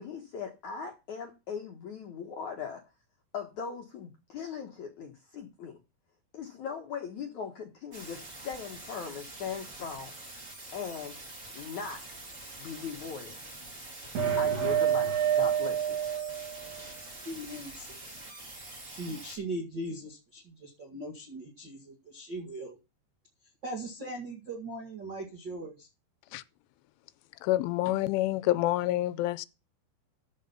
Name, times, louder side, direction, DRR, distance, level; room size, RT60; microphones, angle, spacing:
voice 1, 0.0-2.8 3.3-5.8 6.3-10.1 10.7-11.2 11.5-12.0 12.6-13.4 14.4-15.1 15.3-16.0, left 6 dB, 70° left, 1.8 m, -39 dB
sound 1, 7.9-19.4, right 2 dB, 20° right, 2.1 m, -46 dB
sound 2, 14.1-16.8, right 9 dB, 40° right, 3.1 m, -28 dB
voice 2, 17.2-18.1 18.9-22.8 23.6-25.9, right 1 dB, 55° right, 1.2 m, -39 dB
voice 3, 27.4-29.5, left 15 dB, 85° left, 3.1 m, -27 dB
13.0 x 5.5 x 5.6 m
omnidirectional pair, 5.5 m